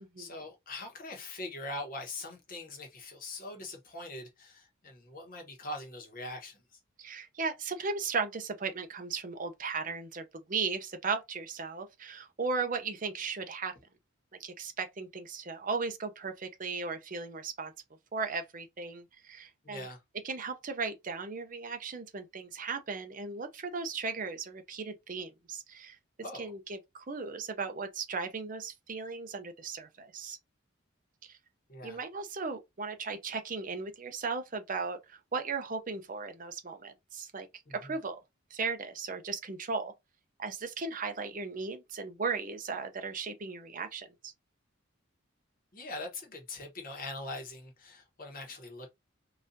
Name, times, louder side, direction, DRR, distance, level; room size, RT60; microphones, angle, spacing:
voice 1, 0.0-6.6 19.6-20.0 26.2-26.5 31.7-32.0 37.7-37.9 45.7-48.9, left 2 dB, 40° left, 1.1 m, -42 dB
voice 2, 7.0-13.7 14.4-17.7 18.1-19.9 20.2-26.0 26.3-30.4 31.2-31.4 31.8-37.5 37.7-38.2 38.5-39.9 40.4-44.3, right 4 dB, 40° right, 0.6 m, -36 dB
3.9 x 2.5 x 2.6 m
head